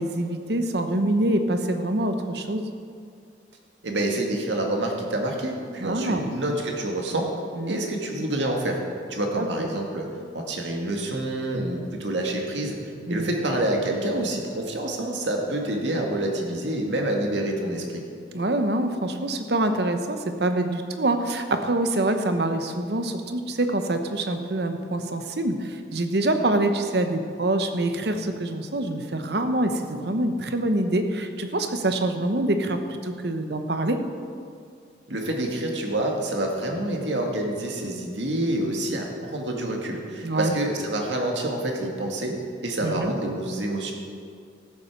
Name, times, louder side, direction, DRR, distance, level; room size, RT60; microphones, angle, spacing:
voice 1, 0.0-2.7 5.8-6.3 7.5-7.8 9.4-9.7 13.1-13.3 18.3-34.0 40.2-40.5 42.8-43.1, right 1 dB, 65° right, 7 dB, 1.0 m, -25 dB
voice 2, 3.8-7.3 7.7-8.8 9.1-12.8 13.1-18.0 35.1-43.9, right 1 dB, 80° right, 1 dB, 2.0 m, -27 dB
14.0 x 8.3 x 6.0 m, 2.3 s
head